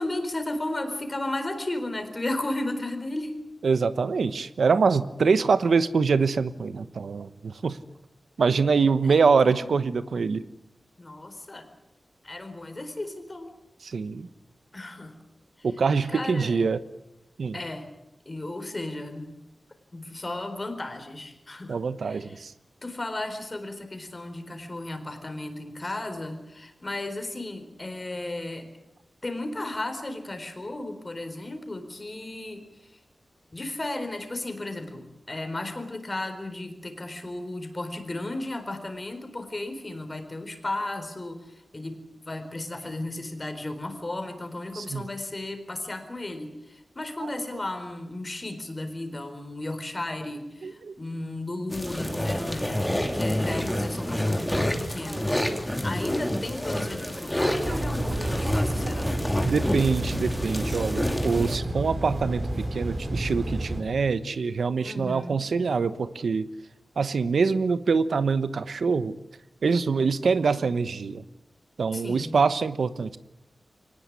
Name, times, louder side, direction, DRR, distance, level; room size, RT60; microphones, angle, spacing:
voice 1, 0.0-3.3 9.0-9.8 11.0-11.7 12.2-13.5 14.7-15.2 15.6-15.7 16.1-16.6 17.5-17.9 18.3-19.3 19.9-21.8 22.0-22.4 22.8-28.7 29.2-33.0 33.5-55.3 55.8-59.1 64.8-65.5 71.9-72.4, left 2 dB, 30° left, 8 dB, 4.2 m, -34 dB
voice 2, 3.6-7.8 8.4-10.4 13.8-14.3 15.6-16.8 17.4-17.6 21.7-22.5 44.7-45.1 50.6-50.9 57.7-57.8 59.4-66.5 67.0-69.2 69.6-71.2 71.8-73.2, right 5 dB, 85° right, 13 dB, 1.0 m, -24 dB
sound 1, 51.7-61.6, left 1 dB, 5° left, 2.8 m, -28 dB
sound 2, 57.6-63.8, right 1 dB, 40° right, 5.1 m, -30 dB
24.0 x 19.0 x 9.7 m, 0.88 s
wide cardioid pair, 100°, 0 cm